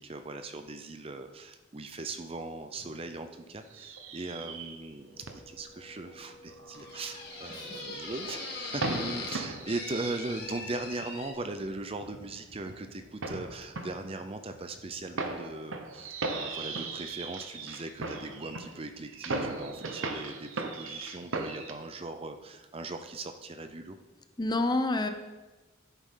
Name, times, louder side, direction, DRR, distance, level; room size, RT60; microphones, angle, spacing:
voice 1, 0.0-24.0, right 2 dB, 30° right, 8 dB, 0.5 m, -39 dB
sound 1, 2.8-3.2 3.7-4.9 5.2-5.4 5.8-10.7 11.0-11.1 11.6-21.7, right 3 dB, 85° right, 1.0 m, -38 dB
sound 2, 5.1-11.3, left 3 dB, 55° left, 2.0 m, -42 dB
voice 2, 24.4-25.1, left 2 dB, 20° left, 7 dB, 0.7 m, -28 dB
14.5 x 8.2 x 3.8 m, 1.2 s
head